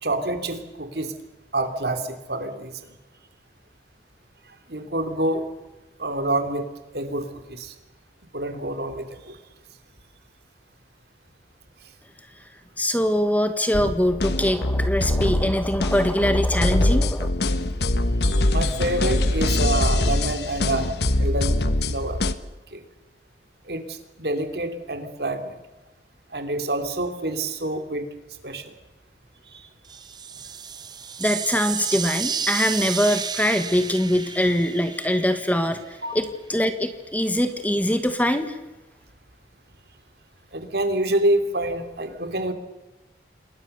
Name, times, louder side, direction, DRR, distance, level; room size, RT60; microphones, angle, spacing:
voice 1, 0.0-1.1 1.5-2.8 4.7-5.5 6.0-6.7 6.9-7.7 8.3-9.4 18.5-20.9 21.2-21.5 21.9-22.2 22.7-22.8 23.6-25.6 26.3-28.0 28.4-28.7 29.5-29.7 36.0-36.2 40.5-42.5, right 1 dB, 60° right, 7 dB, 3.1 m, -27 dB
voice 2, 12.8-17.3 31.2-38.6, equal, 10° left, 9 dB, 1.6 m, -23 dB
sound 1, 13.7-22.3, left 1 dB, 65° left, 1.4 m, -23 dB
sound 2, 29.8-35.7, right 7 dB, 25° right, 0.8 m, -32 dB
28.0 x 21.0 x 6.9 m, 1.1 s
head